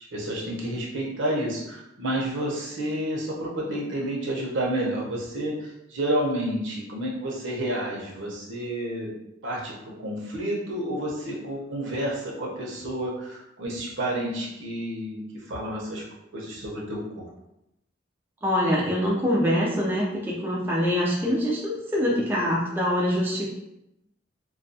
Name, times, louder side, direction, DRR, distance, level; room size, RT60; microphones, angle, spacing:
voice 1, 0.1-9.1 9.4-15.2 15.5-16.0 16.3-17.3, right 1 dB, 70° right, -2 dB, 0.7 m, -30 dB
voice 2, 18.4-23.5, equal, 10° right, -4 dB, 0.3 m, -24 dB
2.3 x 2.2 x 2.6 m, 0.85 s
head